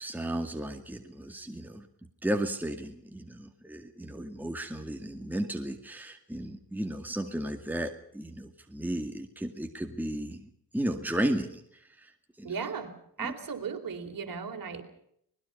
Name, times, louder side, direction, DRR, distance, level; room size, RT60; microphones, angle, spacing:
voice 1, 0.0-1.9 2.2-12.1 12.4-12.5 13.2-13.3, right 1 dB, 5° right, 4 dB, 2.2 m, -34 dB
voice 2, 12.4-14.8, right 6 dB, 50° right, 5 dB, 4.1 m, -36 dB
25.0 x 20.5 x 5.6 m, 0.70 s
cardioid pair, 85°, 43 cm